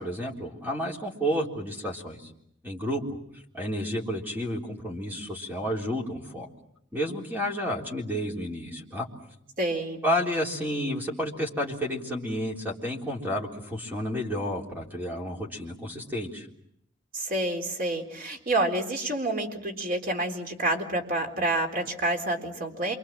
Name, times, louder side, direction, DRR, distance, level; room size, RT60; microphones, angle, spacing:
voice 1, 0.0-2.3 2.6-3.0 3.5-6.5 6.9-9.1 10.0-16.5, equal, 10° right, -1 dB, 3.7 m, -31 dB
voice 2, 9.6-10.0 17.1-23.0, right 1 dB, 45° right, 3 dB, 3.9 m, -28 dB
28.0 x 25.5 x 7.5 m, 0.72 s
head